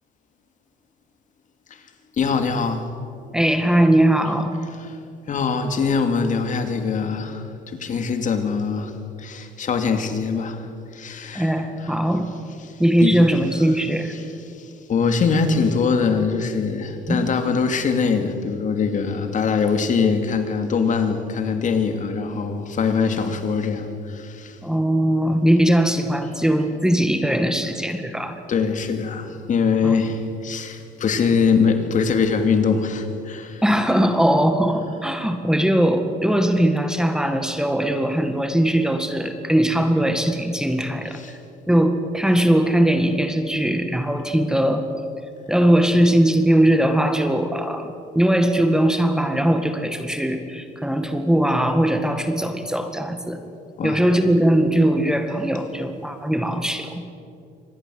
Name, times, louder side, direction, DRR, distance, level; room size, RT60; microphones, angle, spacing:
voice 1, 2.1-2.9 4.8-4.9 5.3-12.0 12.7-13.2 14.1-24.6 28.5-33.6 41.1-41.4 53.8-54.0, left 5 dB, 50° left, 7 dB, 2.6 m, -23 dB
voice 2, 3.3-4.6 11.3-12.3 12.8-14.2 17.1-17.2 24.6-28.4 29.8-30.0 33.6-41.4 41.7-44.8 45.5-53.4 53.8-57.0, right 1 dB, 5° right, 7 dB, 1.9 m, -20 dB
25.5 x 19.5 x 7.9 m, 2.5 s
cardioid pair, 110°, 17 cm